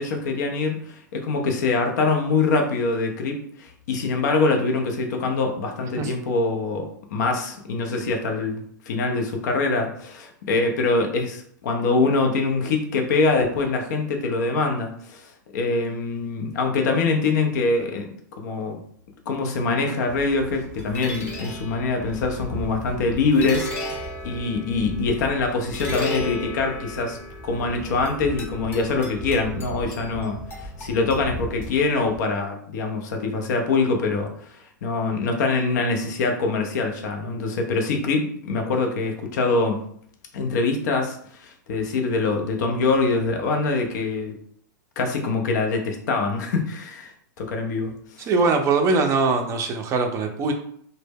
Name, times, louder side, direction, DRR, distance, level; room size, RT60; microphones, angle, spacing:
voice 1, 0.0-15.3 15.5-18.1 18.4-18.8 19.3-27.2 27.4-34.3 34.8-39.8 40.3-44.3 45.0-47.1 47.4-48.3, left 3 dB, 65° left, 3 dB, 0.6 m, -24 dB
sound 1, 20.1-32.2, left 1 dB, 20° left, 0.8 m, -34 dB
voice 2, 48.3-50.5, right 4 dB, 30° right, 4 dB, 0.4 m, -21 dB
2.1 x 2.0 x 3.4 m, 0.64 s
hypercardioid pair, 115°, 10 cm